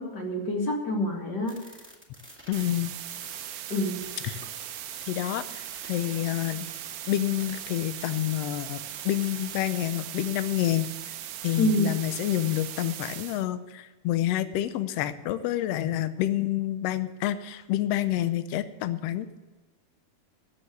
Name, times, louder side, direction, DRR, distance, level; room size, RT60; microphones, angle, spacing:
voice 1, 0.0-1.6 3.7-4.0 11.6-11.9, left 1 dB, 35° left, 0 dB, 2.5 m, -27 dB
sound 1, 1.5-9.7, right 1 dB, 5° right, 1.4 m, -49 dB
voice 2, 2.5-2.9 4.2-4.4 5.1-6.7 7.1-11.1 11.4-19.4, left 13 dB, 75° left, 12 dB, 1.5 m, -28 dB
sound 2, 2.5-13.5, right 12 dB, 75° right, 1.8 m, -39 dB
14.0 x 7.1 x 8.5 m, 1.1 s
omnidirectional pair, 3.7 m